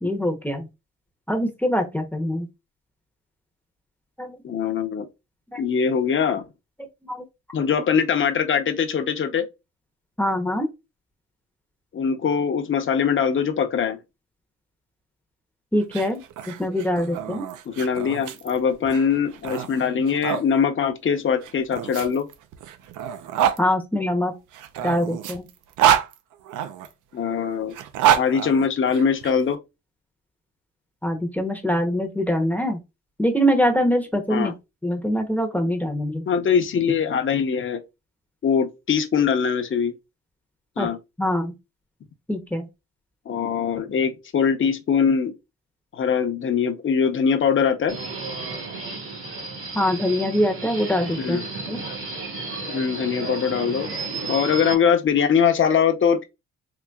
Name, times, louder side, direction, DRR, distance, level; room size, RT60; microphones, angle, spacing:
voice 1, 0.0-0.7 1.3-2.5 4.2-4.4 5.5-5.6 7.0-7.2 10.2-10.7 15.7-17.4 23.6-24.3 24.8-25.5 31.0-32.8 33.2-34.5 34.8-36.3 40.8-40.9 41.2-41.5 42.3-42.6 49.7-51.4 51.7-51.8, equal, 5° left, 0.8 m, -23 dB
voice 2, 4.4-5.1 5.6-6.4 7.5-9.5 11.9-14.0 17.7-22.3 27.1-27.7 28.2-29.6 34.3-34.5 36.3-37.8 38.4-39.9 40.8-41.0 43.3-45.3 45.9-48.0 51.2-51.5 52.7-53.9 54.3-56.2, left 7 dB, 40° left, 0.8 m, -22 dB
sound 1, 15.8-20.4 21.4-23.6 24.5-26.9 27.7-29.3, right 10 dB, 90° right, 0.6 m, -26 dB
Subway metro underground, 47.9-54.7, right 3 dB, 45° right, 1.3 m, -33 dB
3.9 x 2.9 x 2.3 m
cardioid pair, 90°, 30 cm